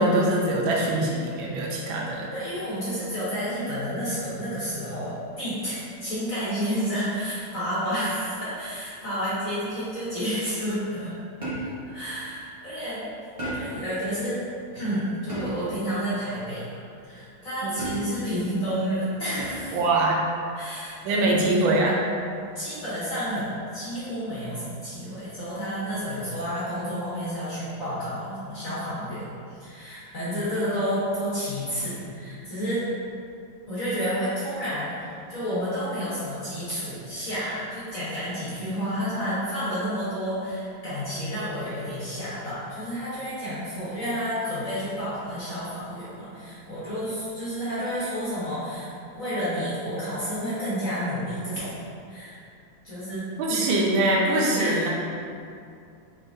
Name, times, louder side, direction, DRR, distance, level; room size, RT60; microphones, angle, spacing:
voice 1, 0.0-2.3 17.6-17.8 19.7-20.2 21.0-22.0 30.2-30.4 53.4-54.9, right 1 dB, 85° right, -2 dB, 1.4 m, -23 dB
voice 2, 2.3-11.1 11.8-13.1 13.5-14.5 14.7-16.8 17.0-19.8 20.5-21.2 22.5-29.2 29.5-32.8 33.7-51.7 52.1-52.4 52.8-53.7 54.6-54.9, equal, 55° left, -11 dB, 1.2 m, -30 dB
sound 1, 11.4-11.9 13.4-13.9 15.3-15.8 17.8-18.3 19.4-19.8 21.2-21.6, right 1 dB, 60° right, 0.3 m, -34 dB
4.0 x 3.6 x 2.5 m, 2.5 s
omnidirectional pair, 2.0 m